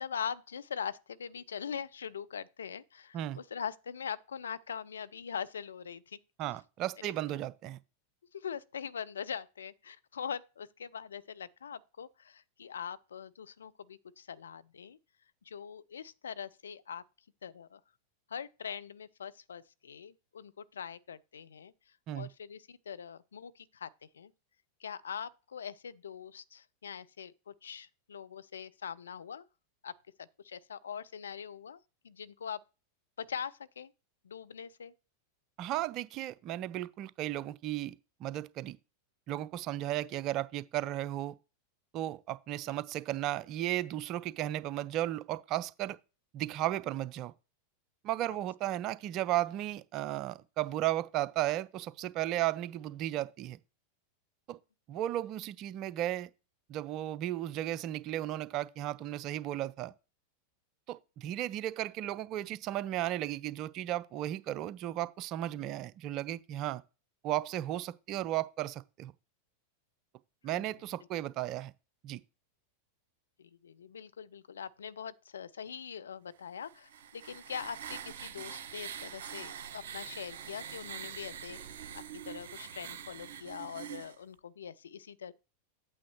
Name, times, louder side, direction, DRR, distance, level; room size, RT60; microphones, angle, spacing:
voice 1, 0.0-6.2 7.0-7.1 8.3-15.0 15.4-17.0 17.4-17.8 18.3-24.3 24.8-29.5 29.8-32.6 33.2-33.9 34.2-34.9 70.4-70.7 73.4-81.6 81.9-85.3, left 7 dB, 70° left, 0.4 m, -42 dB
voice 2, 6.4-7.8 22.1-22.3 35.6-38.8 39.3-41.3 41.9-46.0 46.3-47.3 48.0-53.6 54.5-54.6 54.9-56.3 56.7-59.9 60.9-66.8 67.2-69.1 70.4-71.7 72.0-72.2, right 13 dB, 35° right, 0.4 m, -35 dB
sound 1, 76.6-84.2, right 9 dB, 55° right, 0.9 m, -44 dB
8.7 x 8.3 x 3.0 m
figure-of-eight pair, 90°, 0 cm